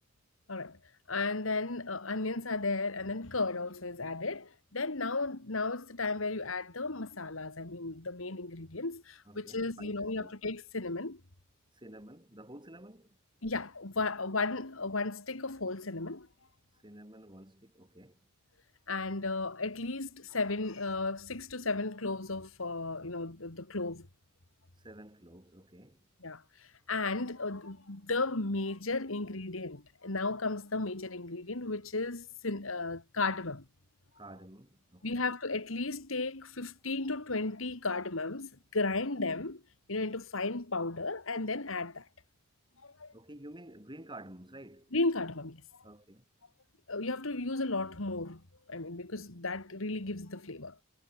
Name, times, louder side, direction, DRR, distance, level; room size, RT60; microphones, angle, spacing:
voice 1, 1.1-11.2 13.4-16.3 18.9-24.1 26.2-26.4 26.9-33.6 35.0-39.6 39.9-42.0 42.8-43.1 44.9-45.6 46.9-48.4 48.7-50.8, left 3 dB, 75° left, 2.4 m, -34 dB
voice 2, 9.3-10.3 11.7-13.2 16.8-18.2 24.8-26.1 34.2-35.3 43.1-44.9 45.8-46.2, right 1 dB, 25° right, 6.5 m, -51 dB
head